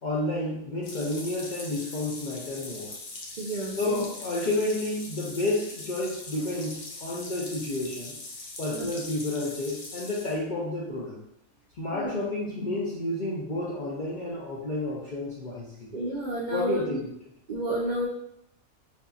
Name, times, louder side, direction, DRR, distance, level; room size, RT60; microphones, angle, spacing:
voice 1, 0.0-2.9 3.8-8.2 8.6-11.2 11.8-15.9 16.5-17.1, left 2 dB, 60° left, -5 dB, 0.5 m, -30 dB
sound 1, 0.8-10.4, left 2 dB, 85° left, 1.2 m, -41 dB
voice 2, 3.4-4.1 8.7-8.9 11.9-12.2 15.9-16.8 17.5-18.1, right 1 dB, 75° right, -4 dB, 0.4 m, -30 dB
4.2 x 2.7 x 2.3 m, 0.76 s
omnidirectional pair, 1.5 m